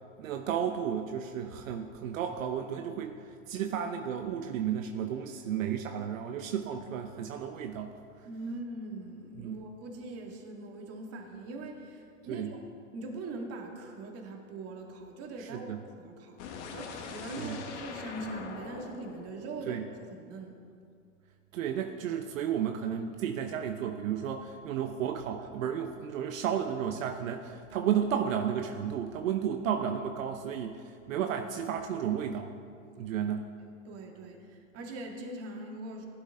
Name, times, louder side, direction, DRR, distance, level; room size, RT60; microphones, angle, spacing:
voice 1, 0.2-7.9 9.4-9.6 12.3-12.5 15.4-15.8 17.4-17.6 19.7-19.9 21.5-32.5 33.0-33.5, right 8 dB, 75° right, 5 dB, 0.9 m, -33 dB
voice 2, 8.2-12.6 12.9-16.4 16.7-20.6 33.8-36.1, right 2 dB, 35° right, 1 dB, 2.3 m, -42 dB
sound 1, 16.4-20.4, left 5 dB, 60° left, 1.7 m, -43 dB
16.5 x 11.5 x 3.8 m, 2.3 s
hypercardioid pair, 115°, 40 cm